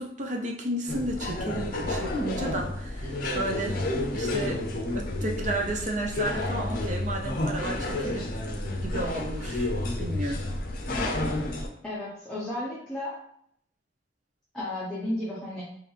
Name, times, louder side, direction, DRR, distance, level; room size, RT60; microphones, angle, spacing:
voice 1, 0.0-3.8 4.1-4.7 4.9-8.3 8.8-9.7 10.0-10.4, right 1 dB, 40° right, 1 dB, 0.6 m, -32 dB
sound 1, 0.9-11.7, left 1 dB, 50° left, 0.6 m, -30 dB
voice 2, 11.8-13.2 14.5-15.6, left 1 dB, 5° left, -9 dB, 0.8 m, -33 dB
4.2 x 2.5 x 3.3 m, 0.69 s
head